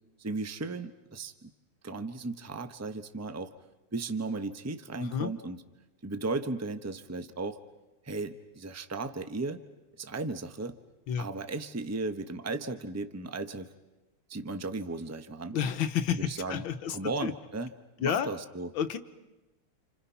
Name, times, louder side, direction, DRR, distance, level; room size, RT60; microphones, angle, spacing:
voice 1, 0.2-1.5 1.8-3.5 3.9-5.6 6.0-7.6 8.0-9.6 10.0-10.8 11.2-13.7 14.3-15.6 16.1-16.6 16.9-17.7 18.0-18.7, right 3 dB, 15° right, 10 dB, 0.7 m, -35 dB
voice 2, 5.0-5.3 11.1-11.3 15.5-17.3 18.0-18.3 18.7-19.0, left 8 dB, 70° left, 10 dB, 1.9 m, -30 dB
29.5 x 29.0 x 5.8 m, 1.1 s
omnidirectional pair, 2.3 m